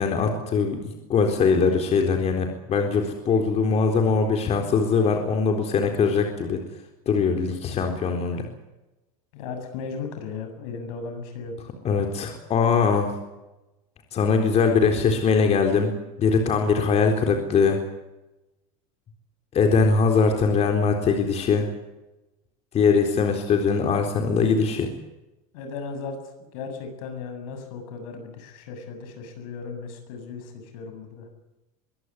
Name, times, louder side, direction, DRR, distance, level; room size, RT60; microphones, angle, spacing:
voice 1, 0.0-6.6 7.1-8.5 11.8-13.1 14.1-17.8 19.5-21.7 22.7-24.9, left 5 dB, 35° left, 4 dB, 4.0 m, -21 dB
voice 2, 9.3-11.5 25.5-26.2 26.5-31.3, left 5 dB, 75° left, 6 dB, 7.7 m, -36 dB
23.5 x 17.0 x 9.7 m, 1.0 s
supercardioid pair, 115°, 18 cm